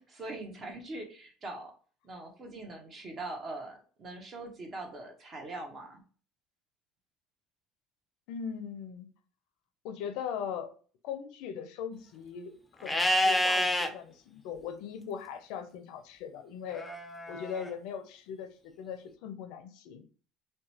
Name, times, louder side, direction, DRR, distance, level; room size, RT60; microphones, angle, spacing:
voice 1, 0.0-1.7 2.0-6.0, right 2 dB, 40° right, 3 dB, 0.8 m, -42 dB
voice 2, 8.3-9.1 9.8-10.7 11.0-16.9 17.3-20.0, left 7 dB, 75° left, 8 dB, 0.4 m, -40 dB
Livestock farm animals working animals, 12.8-13.9 16.7-17.7, left 1 dB, 10° left, 0.4 m, -28 dB
2.9 x 2.1 x 2.8 m, 0.41 s
supercardioid pair, 90°, 0 cm